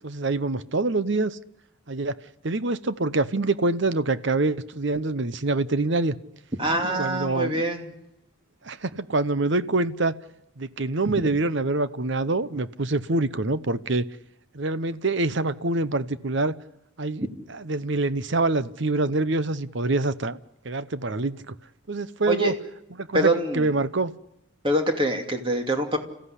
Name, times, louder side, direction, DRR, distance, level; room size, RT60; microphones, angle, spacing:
voice 1, 0.0-1.4 1.9-2.2 2.4-6.2 7.0-7.6 8.6-10.1 10.6-14.0 14.5-16.5 17.0-20.4 20.6-21.5 21.9-22.5 23.0-24.1, right 2 dB, 55° right, 0.9 m, -25 dB
voice 2, 6.6-7.9 22.3-22.5 23.1-23.7 24.6-26.0, right 1 dB, 25° right, 2.7 m, -24 dB
29.5 x 15.5 x 10.0 m
head